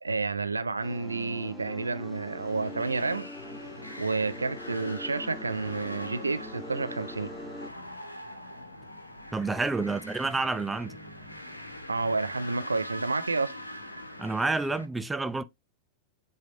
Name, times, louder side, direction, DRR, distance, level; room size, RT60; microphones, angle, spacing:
voice 1, 0.0-3.3 4.0-7.3 11.9-13.5, right 3 dB, 80° right, 0.5 m, -30 dB
sound 1, 0.8-7.7, left 2 dB, 5° left, 1.6 m, -43 dB
sound 2, 2.0-14.9, left 1 dB, 85° left, 1.1 m, -43 dB
voice 2, 9.3-11.0 14.2-15.4, right 3 dB, 10° right, 0.6 m, -29 dB
7.7 x 3.3 x 4.2 m
figure-of-eight pair, 90°, 0 cm